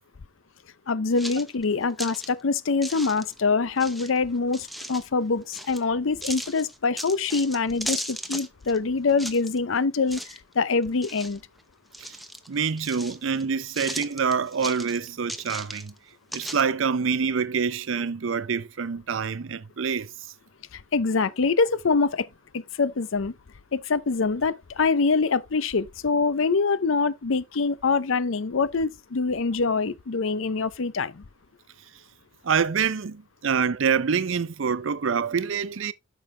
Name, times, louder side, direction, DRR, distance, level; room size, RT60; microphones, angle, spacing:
voice 1, 0.9-10.2 10.5-11.4 20.7-22.3 22.5-23.3 23.7-31.2, left 4 dB, 80° left, 0.6 m, -24 dB
sound 1, 1.2-2.3 2.8-3.4 3.8-5.1 5.5-5.8 6.2-8.8 9.1-9.8 10.1-10.5 10.8-11.6 11.9-13.4 13.7-16.0 16.3-16.6, equal, ahead, 0.7 m, -36 dB
voice 2, 12.5-15.9 16.3-20.1 32.4-35.9, right 6 dB, 70° right, 0.6 m, -26 dB
8.9 x 6.0 x 3.2 m
head